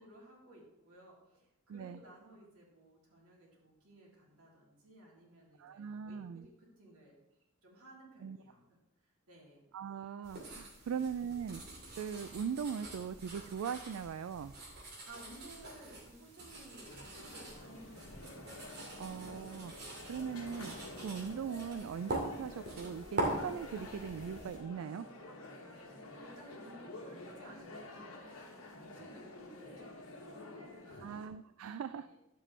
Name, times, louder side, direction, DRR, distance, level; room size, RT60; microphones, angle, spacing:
voice 1, 0.0-7.2 7.6-8.8 9.3-9.6 10.8-11.1 15.1-18.5 18.8-19.2 25.7-31.2 31.9-32.2, right 1 dB, 90° right, -3 dB, 3.1 m, -57 dB
voice 2, 5.6-6.5 8.2-8.4 9.7-11.6 12.0-14.5 19.0-19.7 20.1-20.7 21.0-25.1 31.0-32.1, right 7 dB, 70° right, 12 dB, 0.3 m, -40 dB
sound 1, 10.2-24.6, right 1 dB, 50° right, 2.4 m, -44 dB
sound 2, 16.8-31.3, left 2 dB, 70° left, 1.4 m, -50 dB
11.0 x 7.4 x 3.3 m, 0.90 s
head